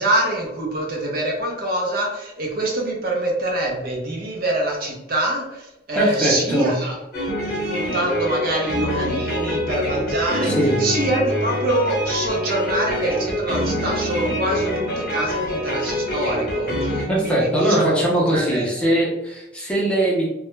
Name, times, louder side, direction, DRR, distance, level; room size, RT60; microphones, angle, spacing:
voice 1, 0.0-7.0 7.7-10.5 10.8-18.0 18.3-18.7, right 1 dB, 55° right, -1 dB, 0.6 m, -25 dB
voice 2, 5.9-6.7 10.4-10.8 17.1-20.2, right 1 dB, 5° left, -4 dB, 0.5 m, -20 dB
sound 1, 7.1-17.1, equal, 55° left, 0.9 m, -25 dB
2.2 x 2.0 x 3.0 m, 0.93 s
head